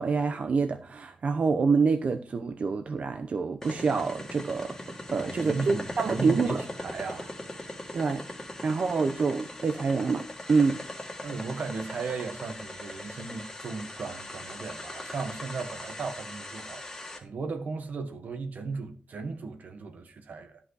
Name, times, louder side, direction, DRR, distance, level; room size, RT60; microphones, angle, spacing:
voice 1, 0.0-4.8 5.1-6.6 7.9-8.2 8.6-10.8, right 4 dB, 55° right, 0.7 m, -26 dB
sound 1, 3.6-17.2, left 1 dB, 15° left, 1.8 m, -40 dB
voice 2, 5.1-7.4 11.2-20.6, right 4 dB, 80° right, 1.5 m, -36 dB
13.0 x 5.7 x 4.8 m
wide cardioid pair, 170°, 3 cm